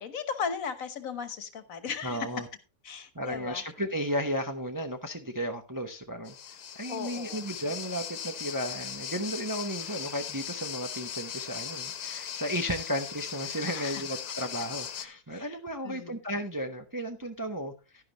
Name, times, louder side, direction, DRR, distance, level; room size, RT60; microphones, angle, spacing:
voice 1, 0.0-2.5 2.8-3.6 6.9-7.5 13.7-14.0 15.3-15.6 15.8-16.1, left 6 dB, 65° left, 11 dB, 1.5 m, -36 dB
voice 2, 2.0-2.5 3.1-18.0, equal, 15° right, 5 dB, 0.7 m, -34 dB
sound 1, 6.3-15.1, left 9 dB, 90° left, 1.4 m, -39 dB
11.5 x 11.0 x 3.0 m, 0.30 s
omnidirectional pair, 1.6 m